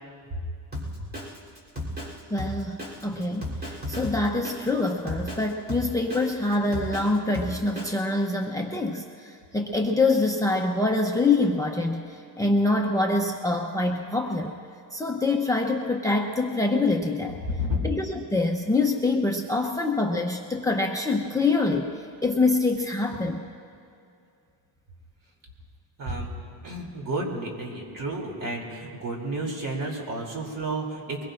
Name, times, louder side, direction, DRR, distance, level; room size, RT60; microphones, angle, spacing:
Drum kit, 0.7-8.0, left 1 dB, 25° right, 3.4 m, -35 dB
voice 1, 2.3-14.6 14.9-17.4 17.8-21.9 22.2-23.5, left 2 dB, 10° left, 2 dB, 0.8 m, -25 dB
voice 2, 26.0-26.4 26.6-31.2, right 1 dB, 50° right, 0 dB, 3.1 m, -31 dB
23.0 x 21.5 x 2.6 m, 2.5 s
cardioid pair, 130°, 41 cm